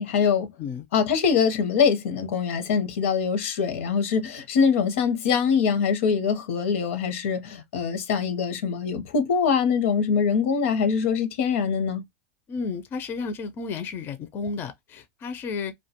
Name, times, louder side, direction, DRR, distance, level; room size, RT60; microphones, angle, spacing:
voice 1, 0.0-0.5 0.9-12.0, left 6 dB, 80° left, 0.7 m, -23 dB
voice 2, 12.5-15.7, left 4 dB, 30° left, 0.4 m, -32 dB
2.2 x 2.1 x 2.7 m
supercardioid pair, 135°, 7 cm